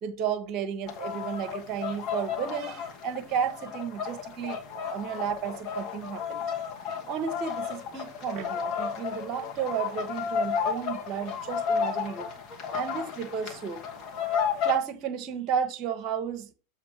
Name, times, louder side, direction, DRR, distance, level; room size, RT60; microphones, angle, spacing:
voice 1, 0.0-6.5 7.1-12.3 12.7-13.8 14.6-16.5, right 8 dB, 35° right, 1.1 m, -32 dB
sound 1, 0.9-14.8, left 7 dB, 40° left, 1.6 m, -33 dB
7.4 x 3.1 x 6.1 m
figure-of-eight pair, 90°, 0 cm